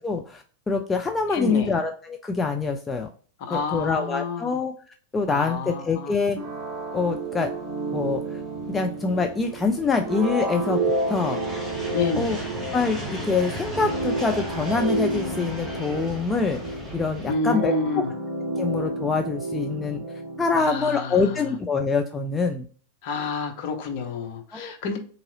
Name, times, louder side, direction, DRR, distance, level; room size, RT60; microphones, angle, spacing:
voice 1, 0.0-3.1 3.5-4.7 5.1-6.4 6.9-7.5 7.9-8.2 8.7-10.8 11.1-11.4 12.2-12.4 12.7-16.6 16.9-18.0 18.6-20.0 20.4-22.7 24.5-24.7, left 4 dB, 15° left, 4 dB, 0.3 m, -25 dB
voice 2, 1.3-1.8 3.4-4.6 5.3-6.1 11.9-12.4 17.3-18.1 20.5-21.4 23.0-25.0, left 4 dB, 50° left, 4 dB, 0.8 m, -29 dB
sound 1, 6.4-17.3, equal, ahead, 1.0 m, -37 dB
sound 2, 6.4-20.9, right 2 dB, 30° right, 1.0 m, -31 dB
3.6 x 2.8 x 2.6 m, 0.43 s
figure-of-eight pair, 90°, 0 cm